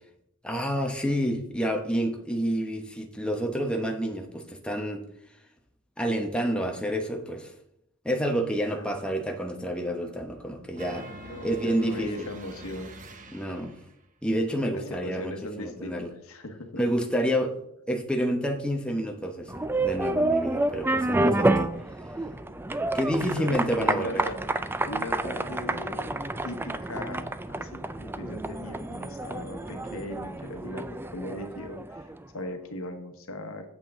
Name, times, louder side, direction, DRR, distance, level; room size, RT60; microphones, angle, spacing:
voice 1, 0.4-5.0 6.0-7.5 8.0-11.1 11.4-12.1 13.3-13.8 14.2-16.1 16.8-17.6 17.9-21.7 22.9-24.2, equal, 5° left, 3 dB, 0.9 m, -29 dB
voice 2, 8.7-9.1 11.2-12.9 14.7-16.7 23.0-24.3 24.9-26.0 26.4-32.1 32.3-33.6, left 1 dB, 75° left, 6 dB, 1.2 m, -38 dB
sound 1, 10.7-13.9, right 1 dB, 40° right, 0.9 m, -44 dB
sound 2, 19.5-32.2, right 2 dB, 10° right, 0.3 m, -29 dB
8.5 x 7.4 x 3.7 m, 0.75 s
head